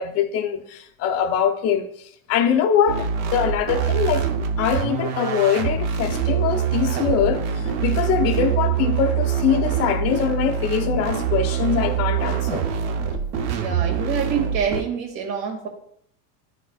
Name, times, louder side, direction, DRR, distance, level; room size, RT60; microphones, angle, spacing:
voice 1, 0.0-4.3 4.6-12.7, left 8 dB, 35° left, 0.6 m, -23 dB
sound 1, 2.9-14.8, right 8 dB, 35° right, 0.7 m, -24 dB
voice 2, 13.5-15.7, right 7 dB, 60° right, 2.1 m, -26 dB
11.0 x 4.1 x 2.3 m
supercardioid pair, 145°, 46 cm